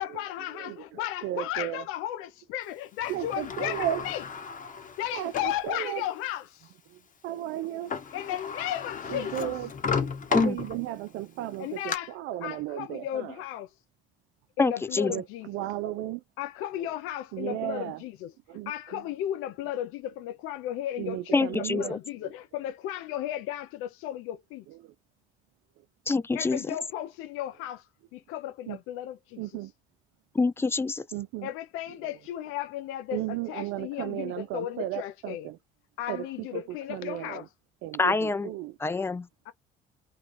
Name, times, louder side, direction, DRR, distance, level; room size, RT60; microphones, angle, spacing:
voice 1, 0.0-4.3 5.0-6.7 8.1-9.7 11.6-13.7 14.6-15.7 16.4-24.7 26.3-29.6 31.4-35.5 36.0-37.5 39.5-39.6, left 12 dB, 80° left, 0.5 m, -35 dB
voice 2, 1.2-1.8 3.1-4.0 5.1-6.0 7.2-7.9 9.1-9.7 10.3-13.3 15.1-16.2 17.3-18.0 18.5-18.7 21.0-21.9 28.7-28.8 29.4-29.7 31.1-31.5 33.1-35.6 36.1-36.2 36.9-37.4 37.8-38.7, right 13 dB, 75° right, 0.4 m, -34 dB
Sliding door, 3.0-5.6 6.2-6.3 7.6-7.7 7.9-11.1 11.5-12.0, left 5 dB, 40° left, 0.9 m, -34 dB
voice 3, 14.6-15.1 21.3-22.0 26.1-26.7 30.3-31.0 38.0-38.5 38.8-39.3, left 3 dB, 10° left, 0.3 m, -26 dB
2.5 x 2.2 x 3.2 m
supercardioid pair, 75°, 21 cm